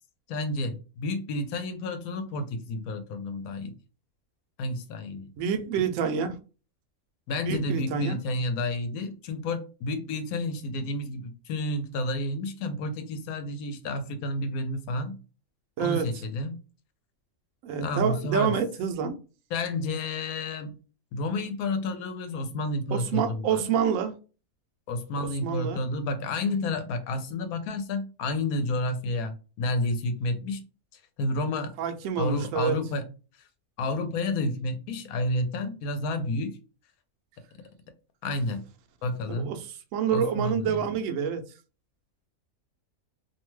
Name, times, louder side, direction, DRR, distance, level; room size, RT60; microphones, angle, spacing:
voice 1, 0.3-3.7 4.6-5.3 7.3-15.2 15.8-16.6 17.8-18.6 19.5-20.8 21.1-23.6 24.9-30.6 31.2-31.7 32.2-33.1 33.8-36.6 38.2-38.6 39.0-39.5 40.1-40.8, left 2 dB, 80° left, 1.1 m, -30 dB
voice 2, 5.4-6.4 7.4-8.2 15.8-16.1 17.6-19.1 22.9-24.1 25.2-25.8 31.8-32.8 39.3-41.4, right 7 dB, 70° right, 0.9 m, -27 dB
2.7 x 2.2 x 3.0 m
omnidirectional pair, 1.5 m